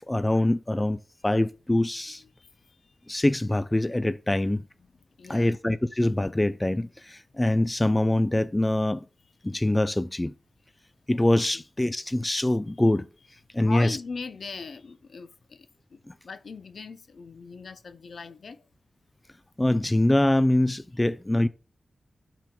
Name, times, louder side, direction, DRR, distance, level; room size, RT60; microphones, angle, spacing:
voice 1, 0.1-2.2 3.1-4.6 5.3-9.0 9.4-10.3 11.1-13.1 13.5-14.0 19.6-21.5, left 1 dB, 15° left, 0.3 m, -24 dB
voice 2, 2.2-3.2 5.2-5.6 11.5-11.6 13.6-18.7, left 4 dB, 75° left, 0.5 m, -40 dB
11.5 x 4.5 x 2.2 m
wide cardioid pair, 80°, 0 cm